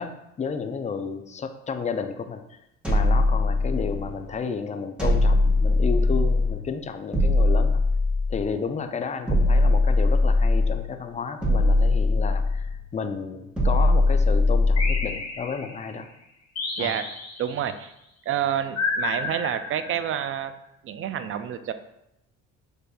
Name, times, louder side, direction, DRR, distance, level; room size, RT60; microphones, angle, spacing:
voice 1, 0.0-2.6 2.9-7.8 8.3-16.1 16.8-17.0, left 5 dB, 20° left, 8 dB, 0.4 m, -32 dB
sound 1, 2.8-4.2 5.0-6.6 7.1-8.5 9.3-10.9 11.4-12.8 13.6-15.2, left 2 dB, 5° right, 1.3 m, -21 dB
sound 2, 14.8-15.9 16.6-17.7 18.8-20.2, left 3 dB, 45° left, 1.2 m, -31 dB
voice 2, 16.8-17.1 17.4-17.9 18.3-20.5 20.8-21.7, right 9 dB, 40° right, 11 dB, 0.4 m, -28 dB
6.5 x 2.6 x 2.2 m, 0.82 s
hypercardioid pair, 65°, 34 cm